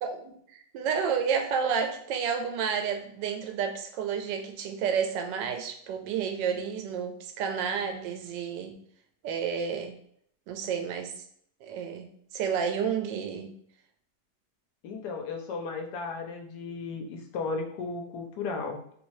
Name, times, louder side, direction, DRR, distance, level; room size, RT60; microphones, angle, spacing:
voice 1, 0.0-8.7 9.2-9.9 10.5-11.1 11.6-12.1 12.3-13.5, right 7 dB, 90° right, 6 dB, 1.2 m, -30 dB
voice 2, 14.8-18.8, left 4 dB, 75° left, 3 dB, 1.1 m, -35 dB
3.1 x 2.6 x 3.0 m, 0.66 s
omnidirectional pair, 1.8 m